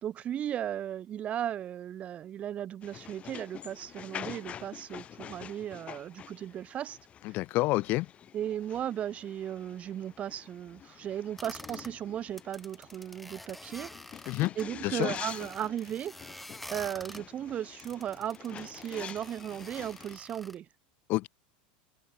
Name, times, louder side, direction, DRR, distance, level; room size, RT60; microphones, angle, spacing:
voice 1, 0.0-7.0 7.3-7.4 8.3-13.9 14.6-16.1 16.7-20.7, right 10 dB, 30° right, 2.5 m, -36 dB
sound 1, 2.8-20.2, left 9 dB, 25° left, 2.4 m, -47 dB
voice 2, 7.2-8.1 14.3-14.5 14.8-15.1 21.1-21.3, left 20 dB, 45° left, 0.4 m, -28 dB
sound 2, 11.4-11.9 12.3-14.6 15.0-17.2 17.8-20.6, left 1 dB, ahead, 3.4 m, -47 dB
supercardioid pair, 145°, 5 cm